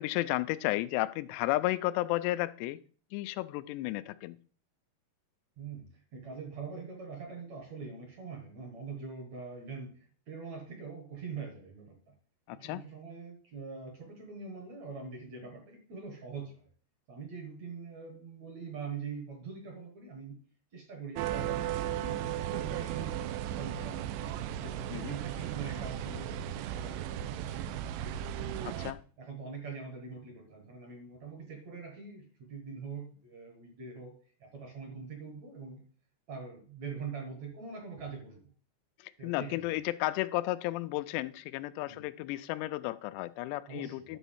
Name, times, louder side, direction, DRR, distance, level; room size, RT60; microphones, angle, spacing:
voice 1, 0.0-2.8 3.1-4.4 12.5-12.8 24.9-25.2 28.6-29.0 39.0-44.2, left 17 dB, 90° left, 14 dB, 2.7 m, -33 dB
voice 2, 5.6-12.2 12.5-16.7 17.1-20.4 20.7-21.6 22.0-24.3 24.6-27.7 29.2-35.8 36.3-38.5 39.2-39.7 41.9-42.0 43.7-44.2, right 5 dB, 55° right, 3 dB, 2.1 m, -43 dB
sound 1, 21.2-28.9, right 11 dB, 90° right, 2.8 m, -36 dB
11.0 x 4.1 x 7.0 m, 0.42 s
omnidirectional pair, 4.8 m